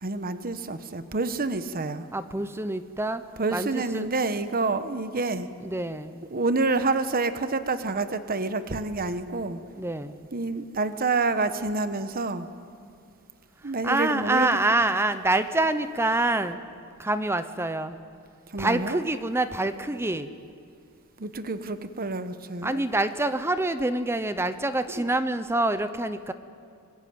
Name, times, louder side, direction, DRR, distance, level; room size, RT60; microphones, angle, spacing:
voice 1, 0.0-2.1 3.4-5.5 6.3-9.6 10.3-12.5 13.6-14.6 18.5-19.0 21.2-22.8 24.9-25.0, right 3 dB, 40° right, 11 dB, 1.1 m, -28 dB
voice 2, 2.1-3.2 3.5-4.1 5.6-6.2 9.8-10.3 13.8-16.6 17.0-18.0 18.6-20.3 22.6-26.3, right 2 dB, 10° right, 11 dB, 0.7 m, -26 dB
24.5 x 21.0 x 9.4 m, 2.3 s
head